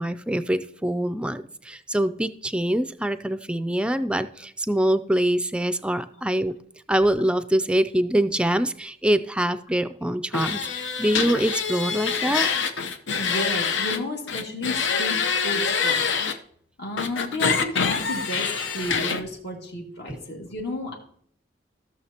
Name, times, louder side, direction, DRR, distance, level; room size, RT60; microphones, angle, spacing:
voice 1, 0.0-6.5 6.9-12.5, right 1 dB, 5° right, 12 dB, 0.4 m, -24 dB
sound 1, 10.3-14.0 14.3-16.3 17.0-19.2, left 6 dB, 80° left, 0.8 m, -25 dB
voice 2, 13.2-16.0 16.8-20.9, left 1 dB, 65° left, -1 dB, 2.2 m, -32 dB
16.0 x 6.4 x 2.9 m, 0.64 s
head